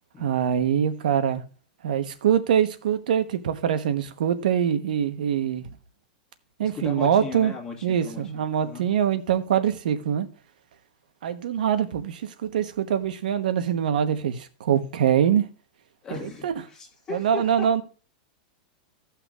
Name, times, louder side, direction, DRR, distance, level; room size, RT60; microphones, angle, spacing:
voice 1, 0.2-1.4 1.8-5.7 6.6-7.5 7.8-10.3 11.2-15.5 16.1-16.5 17.1-17.8, right 9 dB, 85° right, 1.0 m, -24 dB
voice 2, 6.6-8.2 8.6-8.9 16.0-17.8, left 5 dB, 15° left, 1.6 m, -37 dB
16.5 x 5.8 x 2.4 m
supercardioid pair, 175°, 4 cm